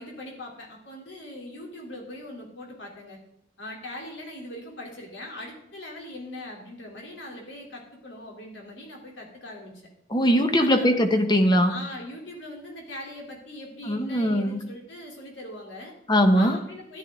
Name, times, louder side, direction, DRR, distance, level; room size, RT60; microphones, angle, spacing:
voice 1, 0.0-3.2 3.6-9.7 10.6-10.9 11.7-15.9 16.3-17.0, left 1 dB, 75° left, 0 dB, 3.2 m, -40 dB
voice 2, 10.1-11.7 13.9-14.6 16.1-16.6, equal, 25° left, 6 dB, 1.1 m, -20 dB
13.0 x 10.5 x 3.7 m, 0.76 s
head